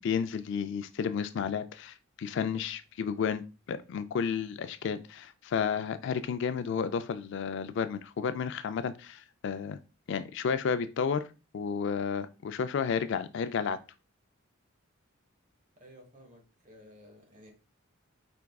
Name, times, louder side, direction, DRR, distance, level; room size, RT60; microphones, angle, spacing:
voice 1, 0.0-9.8 10.1-11.2 11.5-13.8, left 6 dB, 60° left, 0.3 m, -32 dB
voice 2, 15.8-17.5, equal, 40° right, 1.2 m, -54 dB
4.7 x 3.4 x 2.3 m
head